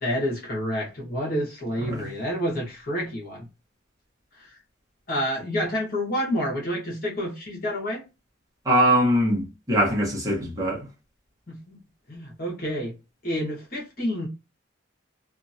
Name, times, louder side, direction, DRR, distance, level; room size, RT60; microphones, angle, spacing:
voice 1, 0.0-3.5 4.4-4.6 5.1-8.1 11.5-11.8 12.1-13.0 13.2-14.3, equal, 50° left, 1.3 m, -29 dB
voice 2, 8.7-10.8, right 1 dB, 20° right, 1.0 m, -22 dB
2.9 x 2.5 x 2.7 m
head